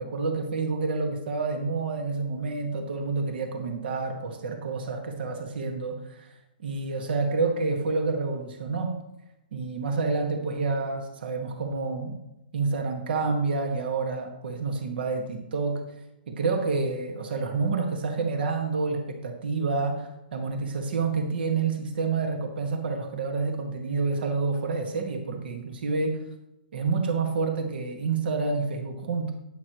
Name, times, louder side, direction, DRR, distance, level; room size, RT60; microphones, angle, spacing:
voice 1, 0.0-6.3 6.6-9.0 9.5-12.2 12.5-15.8 16.3-26.2 26.7-29.3, right 4 dB, 70° right, 4 dB, 1.8 m, -28 dB
12.0 x 9.8 x 3.1 m, 0.91 s
hypercardioid pair, 135°, 5 cm